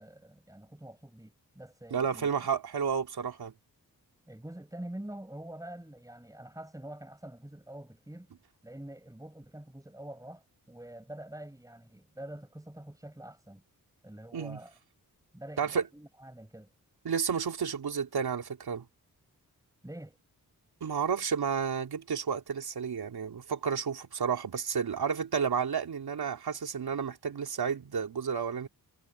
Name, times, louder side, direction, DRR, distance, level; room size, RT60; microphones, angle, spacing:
voice 1, 0.0-2.3 4.3-8.3 8.6-13.6 14.0-14.7 15.3-16.7 19.8-20.2, right 1 dB, 10° right, 7.8 m, -46 dB
voice 2, 1.9-3.5 14.3-14.6 15.6-15.9 17.1-18.9 20.8-28.7, right 6 dB, 85° right, 3.5 m, -31 dB
wide cardioid pair, 125°, 37 cm